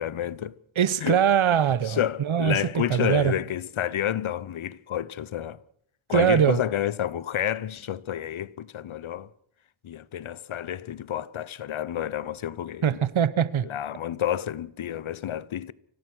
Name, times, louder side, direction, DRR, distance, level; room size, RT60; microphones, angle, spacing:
voice 1, 0.0-0.6 1.0-1.2 1.9-5.6 6.1-9.3 9.8-13.0 13.6-15.7, left 10 dB, 85° left, 0.9 m, -30 dB
voice 2, 0.8-3.3 6.1-6.6 12.8-13.7, right 9 dB, 85° right, 1.0 m, -22 dB
25.5 x 17.5 x 6.2 m
wide cardioid pair, 70°, 47 cm